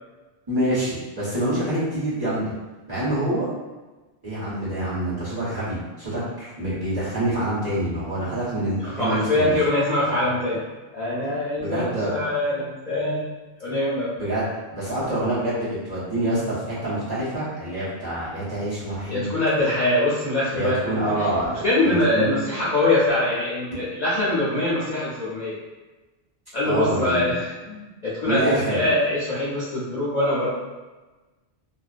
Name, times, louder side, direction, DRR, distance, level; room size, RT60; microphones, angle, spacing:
voice 1, 0.5-2.5 2.9-3.5 4.2-9.5 11.6-12.2 14.2-14.4 14.7-19.3 20.5-22.3 26.6-27.3 28.2-28.9, right 1 dB, 25° right, -11 dB, 1.0 m, -26 dB
voice 2, 8.8-10.6 10.9-13.3 13.6-14.1 19.1-21.3 21.6-25.6 26.5-30.5, left 2 dB, 50° left, -9 dB, 0.6 m, -23 dB
2.5 x 2.2 x 2.4 m, 1.2 s
omnidirectional pair, 1.0 m